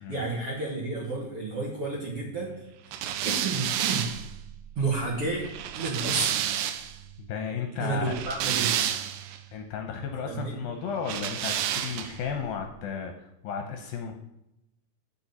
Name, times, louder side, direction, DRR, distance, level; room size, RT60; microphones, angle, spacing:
voice 1, 0.0-2.6 2.9-3.0 3.3-4.1 4.8-5.5 5.7-6.5 7.8-9.0 10.2-10.6, right 3 dB, 50° right, -3 dB, 1.8 m, -31 dB
sound 1, 2.9-7.0 7.9-9.4 11.0-12.3, right 10 dB, 85° right, 2.9 m, -30 dB
voice 2, 7.2-8.2 9.5-14.1, left 6 dB, 75° left, 4 dB, 2.3 m, -34 dB
7.7 x 7.0 x 7.1 m, 0.87 s
omnidirectional pair, 4.8 m